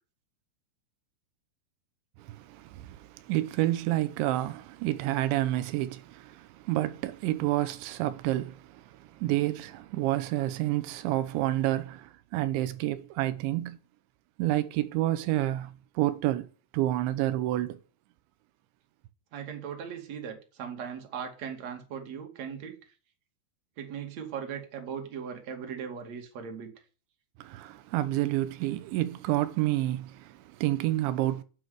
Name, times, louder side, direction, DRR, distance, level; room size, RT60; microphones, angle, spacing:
voice 1, 2.2-13.8 14.4-16.5 16.7-17.8 27.4-31.4, right 15 dB, 90° right, 3.2 m, -29 dB
voice 2, 19.3-22.8 23.8-26.7, right 7 dB, 45° right, 3.2 m, -38 dB
9.6 x 8.7 x 9.4 m
omnidirectional pair, 5.2 m